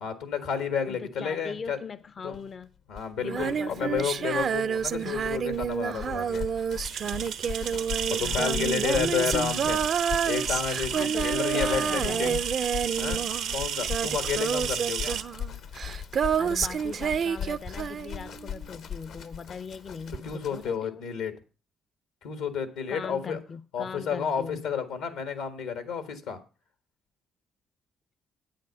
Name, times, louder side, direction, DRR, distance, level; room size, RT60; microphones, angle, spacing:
voice 1, 0.0-1.8 2.2-2.4 2.9-6.5 8.1-9.8 10.2-12.3 13.0-13.2 13.5-15.2 20.2-21.3 22.2-23.4 23.7-26.4, left 6 dB, 90° left, 10 dB, 1.5 m, -31 dB
voice 2, 0.8-2.7 3.2-4.4 8.2-9.6 10.9-12.4 16.4-21.1 22.9-24.7, left 5 dB, 50° left, 15 dB, 0.5 m, -40 dB
sound 1, 2.3-2.4 2.6-2.7 2.9-20.8, left 8 dB, 70° left, 0.9 m, -39 dB
Female singing, 3.2-18.6 20.1-20.2, right 7 dB, 55° right, 0.4 m, -29 dB
sound 2, 6.8-15.2, right 8 dB, 80° right, 0.8 m, -33 dB
8.9 x 7.6 x 5.4 m, 0.34 s
supercardioid pair, 65°, 0 cm